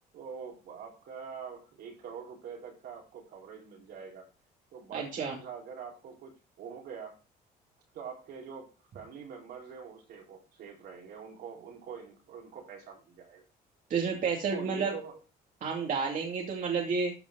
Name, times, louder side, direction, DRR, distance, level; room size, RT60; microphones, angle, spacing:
voice 1, 0.1-4.3 4.7-7.2 7.9-13.4 14.5-15.2, right 6 dB, 75° right, 4.5 m, -44 dB
voice 2, 4.9-5.3 13.9-14.9 15.6-17.1, right 5 dB, 50° right, 2.6 m, -30 dB
14.0 x 5.1 x 3.8 m
cardioid pair, 110°, 17 cm